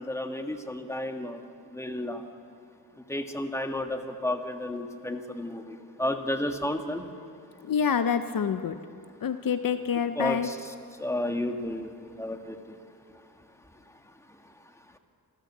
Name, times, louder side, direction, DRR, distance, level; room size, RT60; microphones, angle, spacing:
voice 1, 0.0-1.4 1.7-2.2 3.1-7.1 10.2-10.5 11.0-12.8, left 1 dB, 5° left, 5 dB, 1.5 m, -32 dB
voice 2, 7.6-8.8 9.2-10.5, left 7 dB, 55° left, 9 dB, 0.8 m, -27 dB
27.5 x 13.0 x 7.3 m, 2.5 s
cardioid pair, 95°, 40 cm